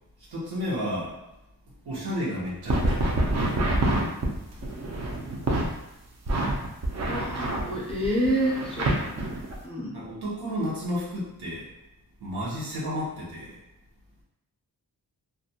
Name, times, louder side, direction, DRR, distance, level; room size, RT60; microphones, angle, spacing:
voice 1, 0.3-1.1 1.8-3.7 9.9-11.7 12.2-13.6, equal, 75° right, -6 dB, 0.9 m, -32 dB
sound 1, 2.7-5.7 6.3-9.6, right 1 dB, 45° right, 0.5 m, -27 dB
voice 2, 7.0-9.2 9.6-9.9, equal, 15° left, -5 dB, 0.5 m, -28 dB
2.4 x 2.2 x 2.7 m, 0.91 s
wide cardioid pair, 135°, 38 cm